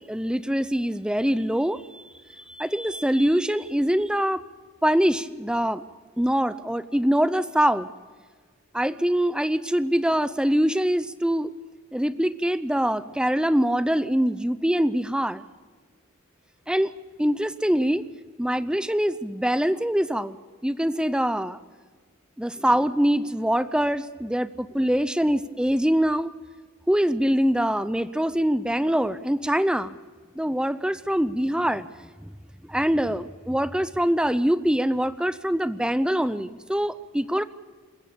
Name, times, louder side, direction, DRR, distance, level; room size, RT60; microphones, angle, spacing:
voice 1, 0.0-2.0 2.3-4.4 4.8-5.8 6.2-7.9 8.7-11.5 11.9-15.4 16.7-16.9 17.2-18.0 18.4-20.4 20.6-21.6 22.4-26.3 26.9-30.0 30.4-31.9 32.2-32.3 32.6-37.4, equal, 5° right, 13 dB, 0.6 m, -24 dB
27.5 x 15.0 x 6.9 m, 1.5 s
head